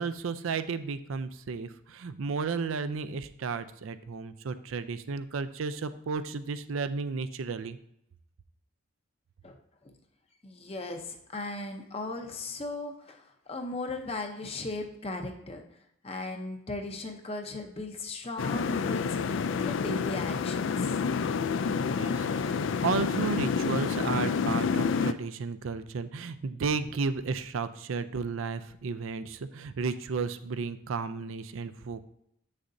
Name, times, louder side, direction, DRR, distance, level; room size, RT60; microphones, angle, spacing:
voice 1, 0.0-7.8 21.7-32.1, right 4 dB, 80° right, 12 dB, 0.5 m, -33 dB
voice 2, 10.4-15.7 16.0-20.9, left 2 dB, 30° left, 4 dB, 0.7 m, -37 dB
sound 1, 18.4-25.1, left 5 dB, 65° left, 0.3 m, -28 dB
8.2 x 6.6 x 2.6 m, 0.77 s
head